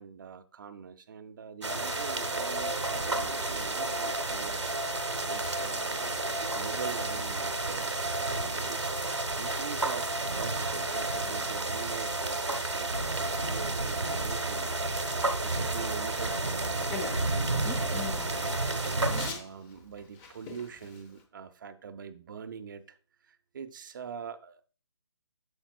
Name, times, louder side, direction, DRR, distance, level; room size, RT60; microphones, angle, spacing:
voice 1, 0.0-4.6 5.3-6.2 6.5-8.9 9.4-14.7 15.1-18.6 19.1-23.0 23.2-24.6, right 7 dB, 45° right, 0.7 m, -43 dB
sound 1, 1.6-19.3, right 2 dB, 90° right, 1.1 m, -31 dB
Bicycle, 4.7-21.2, left 5 dB, 15° left, 0.8 m, -48 dB
9.3 x 7.1 x 2.3 m
figure-of-eight pair, 145°, 15 cm